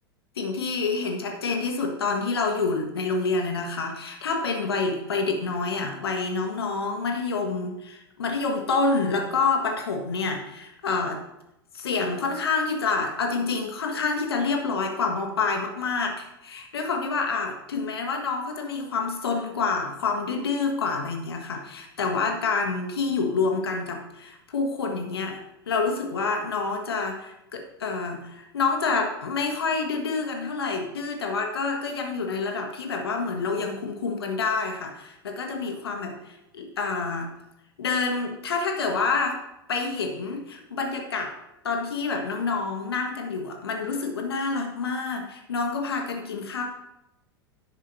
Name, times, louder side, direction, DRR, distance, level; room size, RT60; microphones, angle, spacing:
voice 1, 0.3-11.2 11.7-25.4 25.7-37.3 37.8-39.4 39.7-41.3 41.6-46.6, left 4 dB, 75° left, 3 dB, 1.5 m, -27 dB
10.5 x 6.4 x 4.0 m, 0.88 s
figure-of-eight pair, 90°, 13 cm